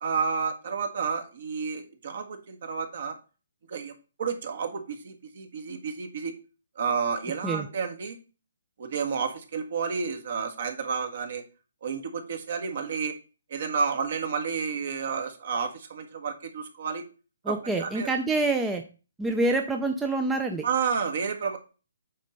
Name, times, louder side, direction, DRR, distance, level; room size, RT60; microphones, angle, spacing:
voice 1, 0.0-3.2 3.7-3.9 4.2-6.3 6.8-8.2 8.8-11.4 11.8-13.1 13.5-17.0 17.5-18.1 20.6-21.6, right 6 dB, 50° right, 6 dB, 1.6 m, -30 dB
voice 2, 17.4-18.8 19.2-20.7, right 2 dB, 5° right, 4 dB, 0.5 m, -26 dB
8.4 x 4.4 x 5.3 m, 0.34 s
hypercardioid pair, 170°, 0 cm